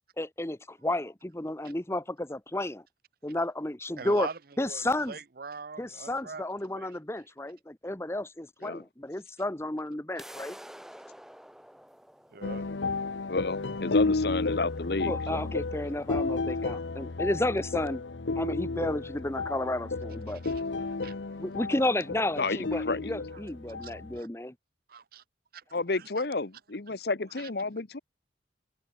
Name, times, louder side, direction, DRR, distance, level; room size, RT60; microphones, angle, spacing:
voice 1, 0.2-2.8 3.2-4.3 4.6-5.1 5.8-10.5 15.0-18.0 18.4-20.4 21.4-24.5, left 1 dB, 15° left, 1.0 m, -32 dB
voice 2, 4.0-6.9 12.3-12.7 20.3-21.2 23.8-24.3 24.9-25.2 25.5-25.6 25.9-26.1 27.4-27.5, right 4 dB, 55° right, 0.7 m, -43 dB
sound 1, 10.2-16.2, equal, ahead, 4.5 m, -50 dB
sound 2, 12.4-24.2, left 3 dB, 85° left, 0.9 m, -32 dB
voice 3, 13.3-15.5 22.4-23.1 25.7-28.0, left 3 dB, 60° left, 1.0 m, -31 dB
head